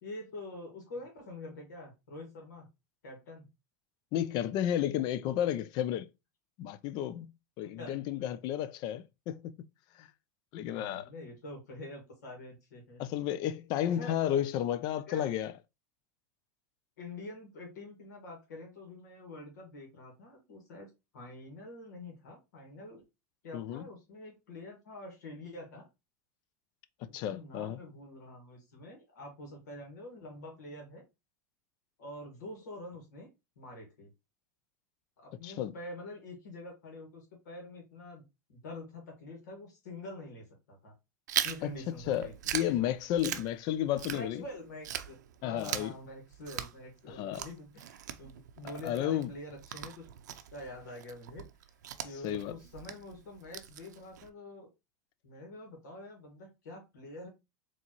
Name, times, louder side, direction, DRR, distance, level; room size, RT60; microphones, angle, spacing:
voice 1, 0.0-2.7 3.0-3.5 7.8-8.0 10.7-13.0 13.9-14.2 15.1-15.3 17.0-23.0 23.4-25.9 27.1-31.0 32.0-33.3 33.6-34.1 35.2-38.2 38.5-40.9 41.4-42.3 42.8-42.9 44.1-50.0 50.3-51.5 52.0-54.7 55.2-57.3, left 2 dB, 80° left, 1.7 m, -46 dB
voice 2, 4.1-6.1 6.6-9.5 10.0-10.1 10.5-11.1 13.0-15.5 23.5-23.9 27.1-27.8 35.4-35.7 41.6-41.7 42.1-44.4 45.4-45.9 47.1-47.4 48.6-49.3 52.2-52.5, left 11 dB, 50° left, 0.4 m, -32 dB
Chewing mastication, 41.3-44.5 44.8-54.3, right 10 dB, 80° right, 0.5 m, -40 dB
4.3 x 3.0 x 2.9 m
hypercardioid pair, 105°, 9 cm